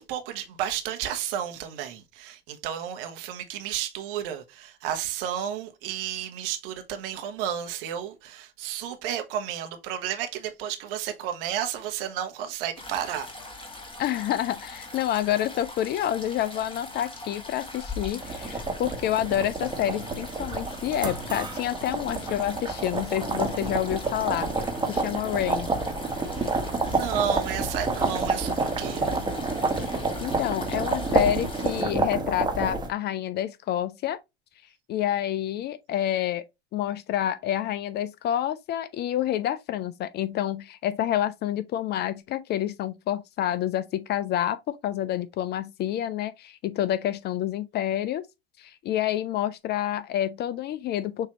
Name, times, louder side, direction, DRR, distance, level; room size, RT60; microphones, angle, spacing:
voice 1, 0.0-13.3 26.3-29.2, right 10 dB, 60° right, 1.1 m, -32 dB
sound 1, 12.8-31.8, left 2 dB, 15° left, 1.6 m, -42 dB
voice 2, 14.0-24.5 24.9-25.7 29.9-34.2 34.9-36.4 36.7-48.2 48.6-51.3, left 11 dB, 35° left, 0.4 m, -28 dB
sound 2, 18.2-32.9, right 3 dB, 15° right, 1.3 m, -29 dB
6.6 x 2.8 x 2.9 m
figure-of-eight pair, 75°, 31 cm